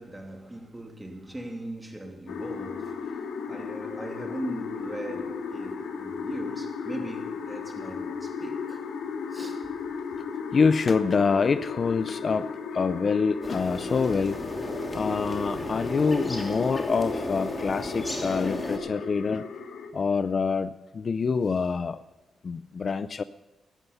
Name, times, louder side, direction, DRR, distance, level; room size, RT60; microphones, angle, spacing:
voice 1, 0.0-9.8, right 1 dB, 10° right, 2.9 m, -39 dB
sound 1, 2.3-19.9, left 5 dB, 90° left, 1.9 m, -36 dB
voice 2, 10.5-14.5 14.9-19.5 19.9-22.0 22.4-23.2, left 5 dB, 45° left, 0.5 m, -26 dB
sound 2, 13.4-18.8, left 1 dB, 15° left, 2.8 m, -33 dB
16.5 x 12.5 x 5.6 m
cardioid pair, 100°, 0 cm